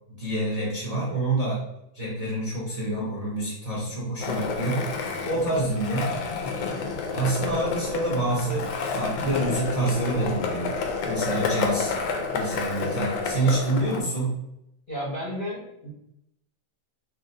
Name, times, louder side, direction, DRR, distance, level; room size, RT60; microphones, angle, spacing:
voice 1, 0.1-1.6 1.9-4.8 5.2-6.1 7.1-10.7 11.1-11.9 12.3-14.3, right 2 dB, 45° right, -6 dB, 0.5 m, -27 dB
Skateboard, 4.2-14.0, left 4 dB, 70° left, 1.3 m, -30 dB
voice 2, 14.9-15.9, equal, 40° left, -7 dB, 0.8 m, -32 dB
6.1 x 2.1 x 2.7 m, 0.83 s
omnidirectional pair, 2.4 m